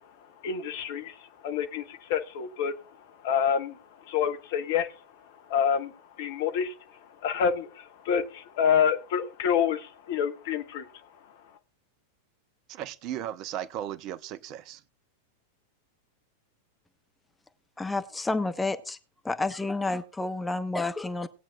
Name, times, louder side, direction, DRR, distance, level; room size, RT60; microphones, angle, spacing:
voice 1, 0.0-11.4, left 7 dB, 50° left, 1.3 m, -29 dB
voice 2, 12.7-14.8, right 11 dB, 40° right, 0.7 m, -36 dB
voice 3, 17.8-19.0 19.2-21.3, left 2 dB, 10° left, 0.7 m, -30 dB
19.0 x 8.8 x 2.4 m
figure-of-eight pair, 90°, 0 cm